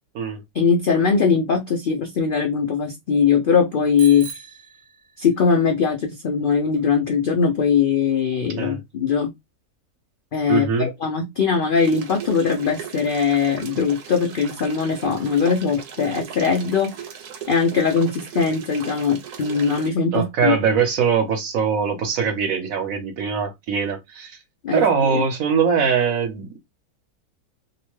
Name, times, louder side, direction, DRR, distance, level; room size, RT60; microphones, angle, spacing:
voice 1, 0.5-4.3 5.2-9.3 10.3-16.9 17.5-20.5 24.6-25.2, left 6 dB, 80° left, 0.4 m, -21 dB
Bicycle bell, 4.0-5.5, right 5 dB, 50° right, 0.7 m, -38 dB
voice 2, 10.5-10.9 20.1-24.4 24.7-26.6, right 6 dB, 65° right, 1.1 m, -22 dB
sound 1, 11.8-19.9, right 8 dB, 85° right, 1.2 m, -38 dB
2.9 x 2.1 x 3.0 m
omnidirectional pair, 1.6 m